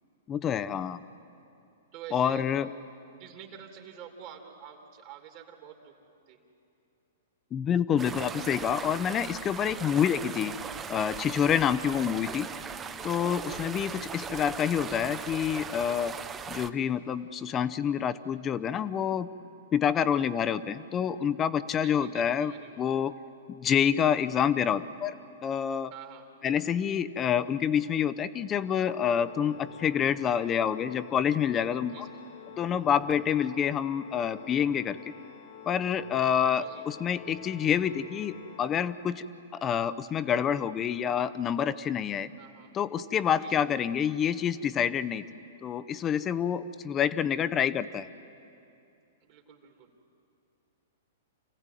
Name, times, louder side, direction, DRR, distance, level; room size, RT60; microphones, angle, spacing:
voice 1, 0.3-1.0 2.1-2.7 7.5-10.5 10.9-12.5 13.0-16.1 16.5-19.3 19.7-23.1 23.5-25.1 25.4-25.9 26.4-32.1 32.6-35.0 35.7-39.2 39.5-42.3 42.7-45.3 45.6-48.1, left 8 dB, 25° left, 15 dB, 0.7 m, -27 dB
voice 2, 1.9-2.4 3.2-5.9 6.3-6.4 13.8-14.1 19.9-20.2 21.8-22.9 25.9-26.3 31.9-32.2 36.5-36.8 42.4-42.7 43.4-43.7 49.2-49.9, right 9 dB, 50° right, 2 dB, 2.9 m, -48 dB
sound 1, 8.0-16.7, right 6 dB, 20° right, 0.8 m, -39 dB
Organ, 28.6-39.5, left 7 dB, 60° left, 1.9 m, -49 dB
26.5 x 16.0 x 9.2 m, 2.7 s
hypercardioid pair, 125°, 0 cm